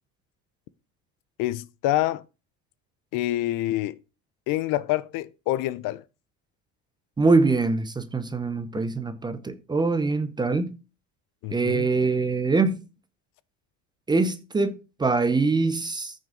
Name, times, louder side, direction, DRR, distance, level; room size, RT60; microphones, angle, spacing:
voice 1, 1.4-2.2 3.1-4.0 4.5-6.0 11.4-11.9, left 15 dB, 60° left, 0.6 m, -26 dB
voice 2, 7.2-10.7 11.5-12.8 14.1-16.1, right 3 dB, 10° right, 0.6 m, -23 dB
14.0 x 6.2 x 3.8 m
cardioid pair, 165°, 38 cm